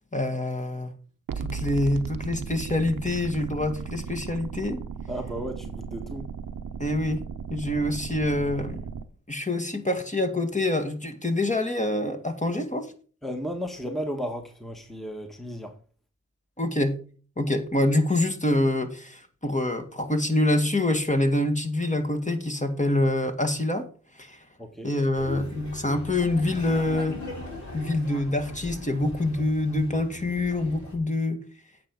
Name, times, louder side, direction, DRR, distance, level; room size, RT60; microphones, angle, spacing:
voice 1, 0.1-0.9 1.4-4.8 6.8-7.2 7.5-8.8 9.3-12.9 16.6-17.0 17.4-23.9 24.2-24.4 24.8-27.2 27.7-31.4, left 1 dB, 20° left, 1.8 m, -26 dB
sound 1, 1.3-9.0, right 6 dB, 80° right, 0.8 m, -36 dB
voice 2, 5.1-6.3 13.2-15.8 24.6-24.9, equal, ahead, 1.4 m, -34 dB
Laughter, 25.1-30.9, left 2 dB, 55° left, 4.6 m, -40 dB
8.8 x 5.8 x 5.2 m
cardioid pair, 40°, 33 cm